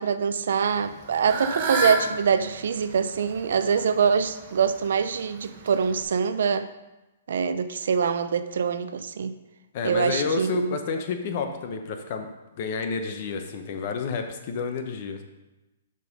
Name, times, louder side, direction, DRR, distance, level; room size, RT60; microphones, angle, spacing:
voice 1, 0.0-6.7 7.3-9.3 9.8-10.8, right 6 dB, 70° right, 11 dB, 0.5 m, -24 dB
Fowl / Bird, 0.7-6.0, right 2 dB, 30° right, 1.0 m, -32 dB
voice 2, 9.7-12.3 12.6-15.2, left 5 dB, 45° left, 6 dB, 0.9 m, -30 dB
6.7 x 5.4 x 5.3 m, 1.0 s
hypercardioid pair, 155°, 0 cm